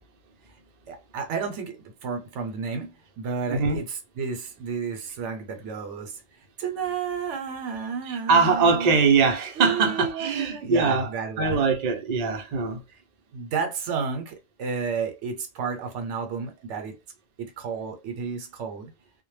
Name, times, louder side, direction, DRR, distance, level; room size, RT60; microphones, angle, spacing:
voice 1, 0.9-6.2 6.6-9.0 9.6-11.6 13.3-17.0 17.4-18.9, right 5 dB, 85° right, 0.9 m, -32 dB
voice 2, 3.5-3.8 8.1-11.1 11.4-12.8, right 4 dB, 50° right, 0.5 m, -22 dB
2.1 x 2.1 x 3.1 m
omnidirectional pair, 1.2 m